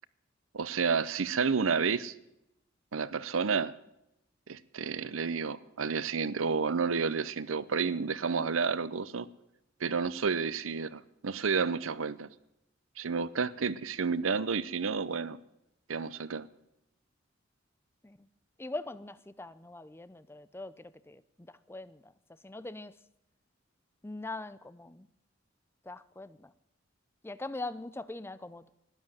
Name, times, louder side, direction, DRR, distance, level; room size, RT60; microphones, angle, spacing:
voice 1, 0.5-2.1 2.9-3.7 4.5-9.3 9.8-12.3 13.0-15.4 15.9-16.5, right 5 dB, 90° right, 0.7 m, -30 dB
voice 2, 18.6-21.2 21.7-22.1 22.4-22.9 24.0-25.1 25.9-26.5 27.2-28.7, left 2 dB, 10° left, 0.5 m, -42 dB
13.0 x 9.9 x 8.9 m
head